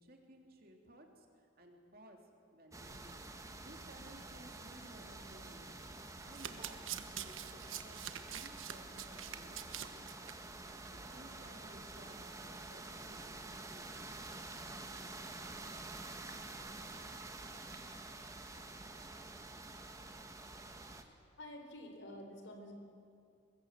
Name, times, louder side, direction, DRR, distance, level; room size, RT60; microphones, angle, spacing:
voice 1, 0.0-2.2 2.5-3.1 3.6-5.9 6.2-10.3 10.9-14.1, right 1 dB, 50° right, 2 dB, 3.1 m, -58 dB
sound 1, 2.7-21.0, right 2 dB, 15° right, 1.3 m, -49 dB
Domestic sounds home sounds, 6.2-10.3 10.7-10.9 11.1-11.2, right 10 dB, 85° right, 1.2 m, -45 dB
sound 2, 16.0-21.4, equal, 35° left, 7.4 m, -71 dB
voice 2, 21.4-22.7, left 1 dB, 75° left, 4 dB, 4.1 m, -49 dB
24.5 x 21.5 x 7.6 m, 2.4 s
head